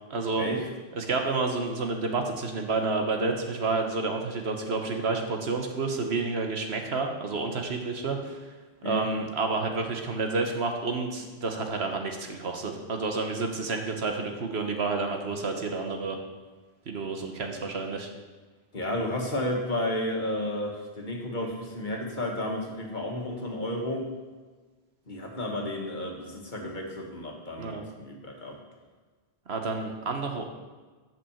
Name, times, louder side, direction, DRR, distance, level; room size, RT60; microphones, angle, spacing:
voice 1, 0.1-0.5 0.9-8.5 8.8-16.2 16.9-18.1 27.6-27.8 29.5-30.4, right 3 dB, 80° right, 4 dB, 1.4 m, -30 dB
voice 2, 18.7-24.1 25.1-28.6, left 1 dB, 50° left, 0 dB, 1.6 m, -32 dB
8.4 x 6.1 x 7.1 m, 1.3 s
omnidirectional pair, 1.1 m